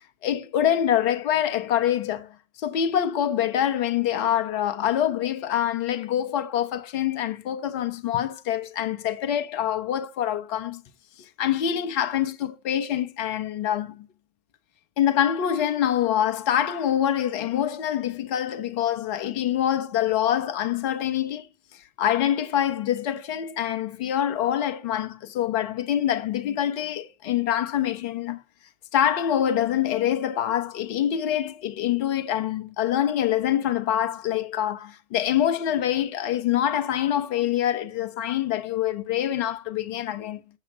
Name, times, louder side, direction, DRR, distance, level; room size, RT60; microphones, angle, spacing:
voice 1, 0.2-10.8 11.2-14.1 15.0-21.5 22.0-28.4 28.9-40.4, left 10 dB, 55° left, 1.3 m, -25 dB
7.9 x 7.3 x 3.6 m
figure-of-eight pair, 75°, 43 cm